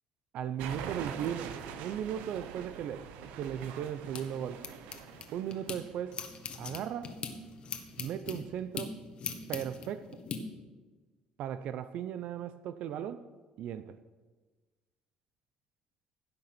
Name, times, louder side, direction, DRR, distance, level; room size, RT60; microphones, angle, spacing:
voice 1, 0.3-3.1 3.3-4.6 5.3-6.2 6.6-7.1 8.0-9.0 9.5-10.2 11.4-13.2 13.6-14.0, right 9 dB, 60° right, 12 dB, 0.5 m, -37 dB
sound 1, 0.6-6.1, right 8 dB, 90° right, 0.9 m, -44 dB
sound 2, 3.4-5.8 6.1-10.4, left 6 dB, 45° left, 1.4 m, -41 dB
15.5 x 6.9 x 5.9 m, 1.3 s
cardioid pair, 125°, 2 cm